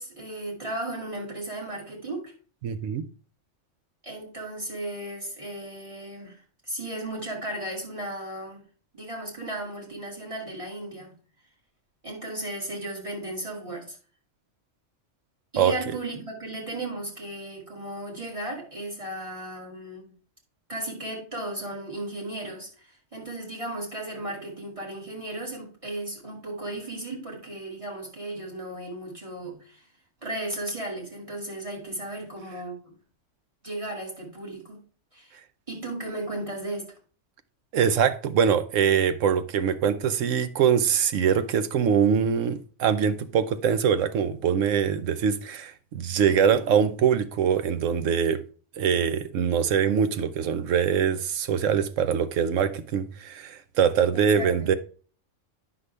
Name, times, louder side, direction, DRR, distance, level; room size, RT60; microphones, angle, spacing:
voice 1, 0.0-2.3 4.0-6.4 6.7-8.6 8.9-11.1 12.0-14.0 15.5-20.1 20.7-29.9 30.2-32.9 33.6-34.8 35.1-35.4 35.7-36.9 54.1-54.7, right 1 dB, 25° right, 2.5 m, -35 dB
voice 2, 2.6-3.1 15.6-15.7 37.7-48.4 48.8-54.7, right 7 dB, 90° right, 1.1 m, -23 dB
9.4 x 6.0 x 3.3 m
omnidirectional pair, 1.3 m